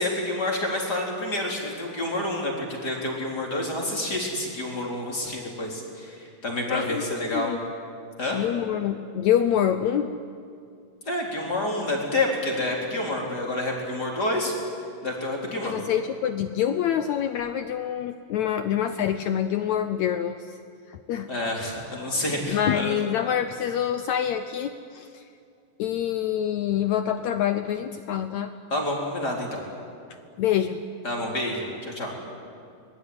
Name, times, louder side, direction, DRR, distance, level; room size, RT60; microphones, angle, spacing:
voice 1, 0.0-7.5 8.2-8.4 11.1-14.5 15.0-15.8 21.3-22.9 28.7-29.6 31.0-32.1, left 1 dB, 25° left, -1 dB, 4.2 m, -28 dB
voice 2, 6.7-7.6 8.3-10.2 15.6-20.6 20.9-21.3 22.2-25.2 25.8-28.5 30.4-30.8, left 10 dB, 80° left, 10 dB, 1.6 m, -26 dB
24.5 x 20.5 x 9.6 m, 2.4 s
omnidirectional pair, 4.1 m